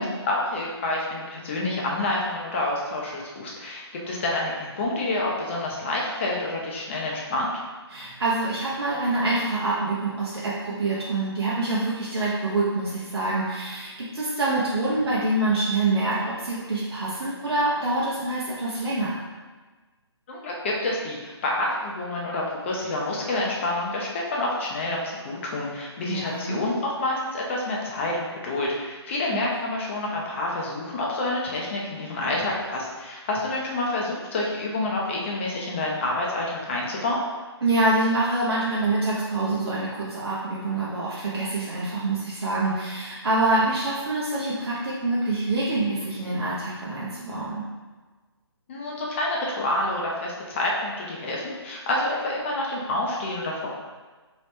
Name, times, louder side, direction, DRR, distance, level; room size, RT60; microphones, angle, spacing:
voice 1, 0.0-7.5 20.3-37.2 48.7-53.7, left 2 dB, 25° left, -3 dB, 0.6 m, -28 dB
voice 2, 7.9-19.2 26.1-26.6 29.3-29.4 37.6-47.6, right 2 dB, 65° right, -7 dB, 0.9 m, -26 dB
3.1 x 3.0 x 3.2 m, 1.3 s
figure-of-eight pair, 155°, 14 cm